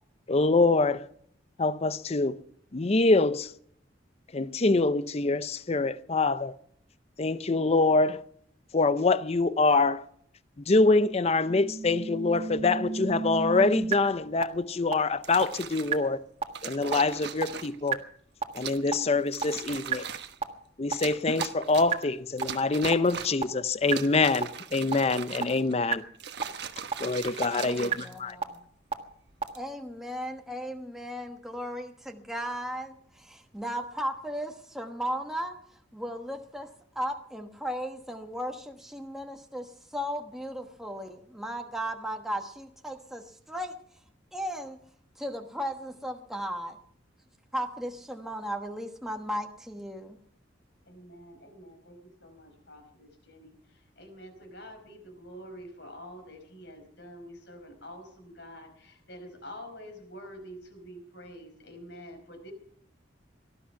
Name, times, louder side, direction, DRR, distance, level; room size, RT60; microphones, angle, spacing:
voice 1, 0.3-1.1 1.6-2.4 2.7-3.5 4.3-6.5 7.2-8.2 8.7-10.0 10.7-16.2 16.6-18.0 18.5-20.1 20.8-26.0 27.0-28.4, left 3 dB, 35° left, 0.6 m, -25 dB
sound 1, 11.5-13.9 14.4-14.5 14.9-15.0 15.4-15.5 15.9-16.0 16.4-16.5 16.9-17.0 17.4-17.5 17.9-18.0 18.4-18.5 18.9-19.0 19.4-19.5 19.9-20.0 20.4-20.5 20.9-21.0 21.4-21.5 21.9-22.0 22.4-22.5 22.9-23.0 23.4-23.5 23.9-24.0 24.4-24.5 24.9-25.0 25.4-25.5 25.9-26.0 26.4-26.5 26.9-27.0 27.4-27.5 27.9-28.0 28.4-28.5 28.9-29.0 29.4-29.5, right 6 dB, 30° right, 1.6 m, -29 dB
sound 2, 15.2-16.0 16.5-17.9 18.5-18.9 19.3-20.4 20.9-22.0 22.4-23.5 23.8-25.7 26.1-28.6 29.3-29.6, right 6 dB, 60° right, 1.2 m, -39 dB
voice 2, 27.5-28.6 29.5-35.6 35.9-36.7 36.9-43.7 44.3-44.8 45.2-46.8 47.5-50.2, equal, ahead, 1.2 m, -36 dB
voice 3, 50.9-53.5 54.0-62.5, equal, 65° left, 4.8 m, -47 dB
18.5 x 13.0 x 5.7 m
head